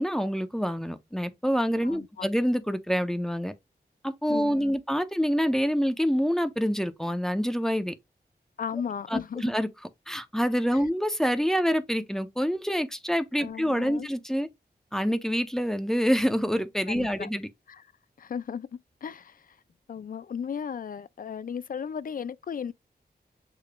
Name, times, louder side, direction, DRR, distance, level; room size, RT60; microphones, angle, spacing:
voice 1, 0.0-3.5 4.0-7.9 9.1-9.7 10.1-14.5 14.9-17.5, equal, 5° left, 0.7 m, -26 dB
voice 2, 1.8-2.3 4.3-4.7 8.6-9.5 10.7-10.8 13.4-14.1 16.9-17.3 17.7-17.8 18.2-19.6 19.9-22.7, left 7 dB, 55° left, 0.4 m, -36 dB
6.7 x 3.1 x 2.3 m
wide cardioid pair, 80°, 17 cm